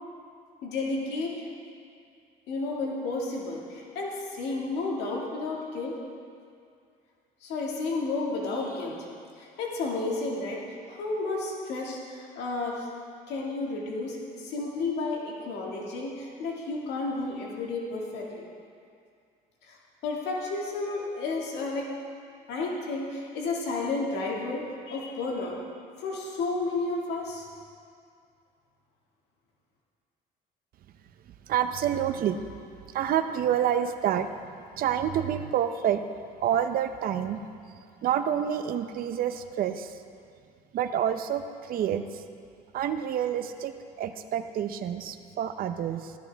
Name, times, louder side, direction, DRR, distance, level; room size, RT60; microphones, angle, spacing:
voice 1, 0.6-1.4 2.5-6.0 7.4-9.1 9.4-12.9 13.3-18.4 19.7-19.8 20.0-21.9 22.5-25.6 26.0-27.5, left 3 dB, 80° left, -2 dB, 2.1 m, -32 dB
voice 2, 31.4-32.4 32.9-34.5 34.7-36.0 36.4-37.5 37.7-40.0 40.7-42.2 42.7-46.2, right 9 dB, 60° right, 9 dB, 0.7 m, -28 dB
14.5 x 13.0 x 3.5 m, 2.3 s
cardioid pair, 110°, 17 cm